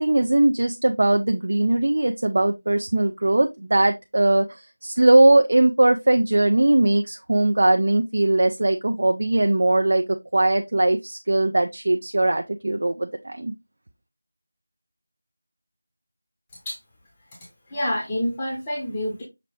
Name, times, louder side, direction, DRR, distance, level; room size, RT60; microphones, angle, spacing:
voice 1, 0.0-13.5, right 2 dB, 45° right, 5 dB, 0.4 m, -20 dB
voice 2, 17.7-19.2, left 1 dB, 10° left, -3 dB, 0.7 m, -27 dB
5.8 x 2.9 x 3.1 m, 0.21 s
figure-of-eight pair, 180°, 0 cm